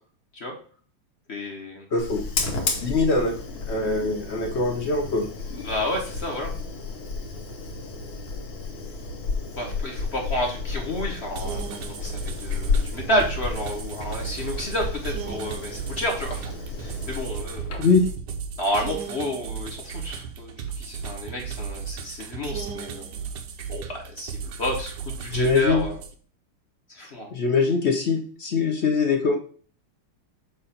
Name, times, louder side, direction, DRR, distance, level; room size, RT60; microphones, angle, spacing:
voice 1, 1.3-1.9 5.6-6.5 9.6-16.5 16.8-17.8 18.6-23.1 23.7-26.0 26.9-27.3, equal, 40° left, 1 dB, 1.0 m, -30 dB
voice 2, 1.9-2.2 2.8-3.3 3.7-5.3 17.8-18.0 25.3-25.8 27.3-29.4, left 4 dB, 55° left, 3 dB, 0.7 m, -22 dB
Fire, 2.0-18.1, left 4 dB, 85° left, 2.0 m, -32 dB
sound 1, 11.4-26.1, right 6 dB, 65° right, 1.2 m, -35 dB
6.8 x 2.6 x 5.7 m, 0.42 s
omnidirectional pair, 2.3 m